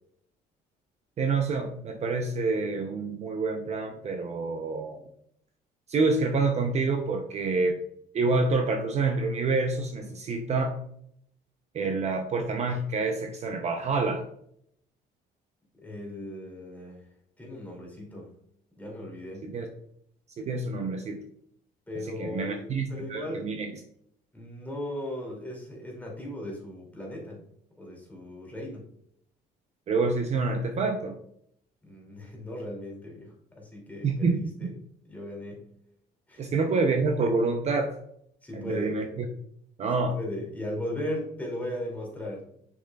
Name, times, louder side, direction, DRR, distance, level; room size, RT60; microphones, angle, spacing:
voice 1, 1.2-5.0 5.9-7.8 8.1-10.7 11.7-14.2 19.4-19.7 20.4-21.2 22.2-23.7 29.9-31.2 34.0-34.7 36.4-38.0 38.5-39.3 39.8-40.2, right 3 dB, 40° right, 4 dB, 0.7 m, -27 dB
voice 2, 15.8-17.0 17.4-18.3 18.8-19.5 21.9-23.7 24.3-27.4 27.8-28.9 31.8-34.7 35.1-35.6 36.3-36.4 38.4-39.0 40.0-42.4, left 1 dB, 10° left, -2 dB, 2.5 m, -37 dB
6.4 x 6.3 x 2.3 m, 0.70 s
cardioid pair, 110°, 17 cm